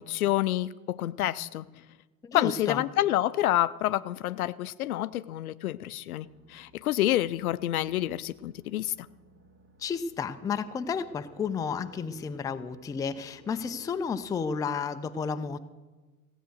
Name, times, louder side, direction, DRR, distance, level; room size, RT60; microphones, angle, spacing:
voice 1, 0.0-1.7 2.3-9.1, left 14 dB, 70° left, 17 dB, 0.5 m, -28 dB
voice 2, 2.2-2.8 9.8-15.6, left 6 dB, 10° left, 10 dB, 0.4 m, -32 dB
sound 1, 6.2-14.2, right 1 dB, 35° right, 2.1 m, -57 dB
16.0 x 7.9 x 6.5 m, 1.3 s
figure-of-eight pair, 70°, 45 cm